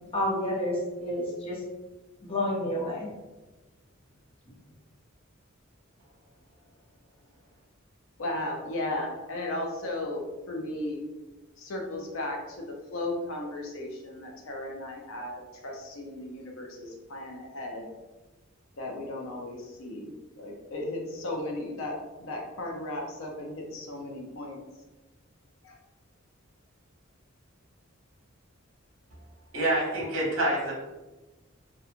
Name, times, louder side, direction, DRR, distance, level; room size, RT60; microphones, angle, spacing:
voice 1, 0.1-1.6 2.2-3.1, left 1 dB, 30° left, -4 dB, 0.7 m, -29 dB
voice 2, 8.2-11.0 11.6-17.9 18.8-24.6 25.6-25.8, left 1 dB, 70° left, 0 dB, 0.5 m, -35 dB
voice 3, 29.5-30.7, right 1 dB, 70° right, -3 dB, 0.9 m, -26 dB
2.8 x 2.3 x 2.4 m, 1.1 s
head